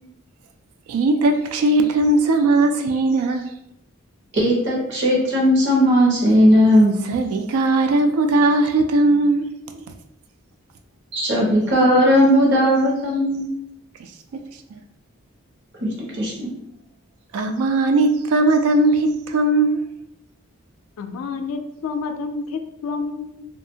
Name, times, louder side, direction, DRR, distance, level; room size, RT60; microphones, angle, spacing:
voice 1, 0.9-3.5 7.1-9.9 14.7-14.8 17.3-19.9, right 2 dB, 85° right, 6 dB, 0.3 m, -19 dB
voice 2, 4.3-6.9 11.1-13.5 16.1-16.5, equal, 55° right, -3 dB, 1.0 m, -17 dB
voice 3, 21.0-23.5, left 4 dB, 80° left, 7 dB, 0.4 m, -29 dB
2.7 x 2.4 x 2.7 m, 0.78 s
head